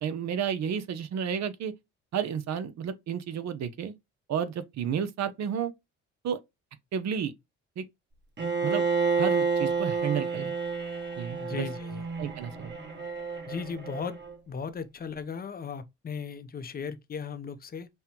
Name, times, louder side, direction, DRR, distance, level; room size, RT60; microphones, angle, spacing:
voice 1, 0.0-1.7 2.1-3.9 4.3-5.7 6.2-6.4 6.9-7.3 7.8-7.9 8.6-8.9 9.2-10.5 11.2-11.7 12.2-12.8, right 8 dB, 60° right, 0.7 m, -31 dB
Bowed string instrument, 8.4-14.3, right 4 dB, 35° right, 1.3 m, -30 dB
voice 2, 11.4-12.0 13.5-14.2 14.5-17.9, left 6 dB, 30° left, 0.6 m, -37 dB
5.5 x 2.2 x 2.9 m
cardioid pair, 90°, 30 cm